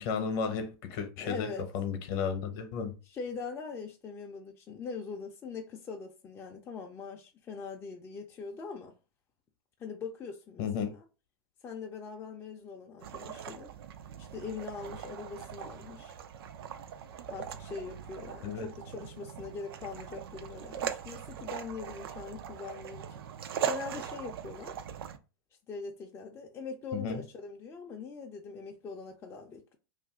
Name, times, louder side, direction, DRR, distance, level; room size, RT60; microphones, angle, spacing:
voice 1, 0.0-1.5 1.7-2.9 10.6-10.9 18.4-18.7 26.9-27.2, left 6 dB, 50° left, 0.8 m, -33 dB
voice 2, 0.9-1.7 3.0-9.0 9.8-11.0 11.6-13.7 14.2-16.2 17.3-23.2 23.6-24.8 25.7-29.8, left 5 dB, 20° left, 0.4 m, -42 dB
sound 1, 13.0-25.2, right 9 dB, 65° right, 0.4 m, -40 dB
2.6 x 2.5 x 3.6 m
hypercardioid pair, 115°, 13 cm